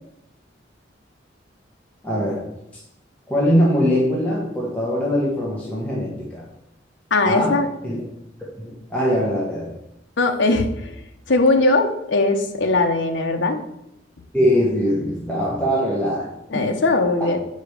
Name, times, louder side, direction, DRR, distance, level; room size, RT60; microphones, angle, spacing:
voice 1, 2.0-2.5 3.3-6.4 7.2-8.0 8.6-9.7 14.3-16.3 16.5-16.8, equal, 10° left, -6 dB, 1.3 m, -22 dB
voice 2, 7.1-7.7 10.2-11.0 11.3-13.6 16.5-17.4, left 2 dB, 80° left, 4 dB, 0.9 m, -19 dB
5.3 x 5.1 x 6.5 m, 0.83 s
head